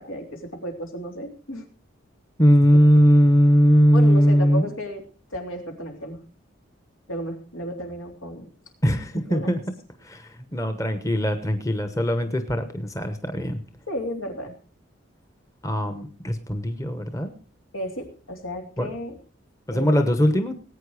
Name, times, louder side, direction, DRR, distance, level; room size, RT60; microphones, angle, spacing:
voice 1, 0.0-1.6 3.9-5.0 5.3-6.2 7.1-8.5 9.3-9.6 13.9-14.5 17.7-19.2 19.7-20.0, equal, 80° left, 3 dB, 3.3 m, -33 dB
voice 2, 2.4-4.7 8.8-9.6 10.0-13.6 15.6-17.3 18.8-18.9 19.7-20.5, equal, 15° left, 8 dB, 1.0 m, -20 dB
19.5 x 9.0 x 4.9 m, 0.40 s
head